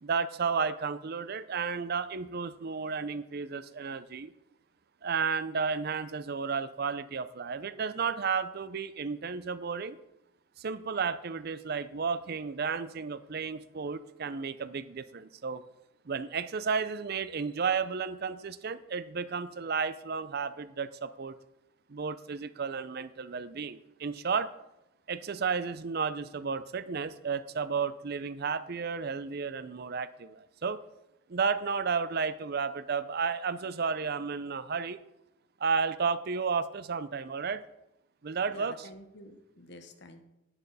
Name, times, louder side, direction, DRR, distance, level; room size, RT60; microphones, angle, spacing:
voice 1, 0.0-4.3 5.0-10.0 10.6-15.6 16.1-21.4 21.9-24.5 25.1-30.8 31.3-35.0 35.6-37.6 38.2-38.9, right 5 dB, 45° right, 14 dB, 0.5 m, -32 dB
voice 2, 38.5-40.2, left 1 dB, 55° left, 7 dB, 1.2 m, -49 dB
11.0 x 10.5 x 4.1 m, 0.89 s
head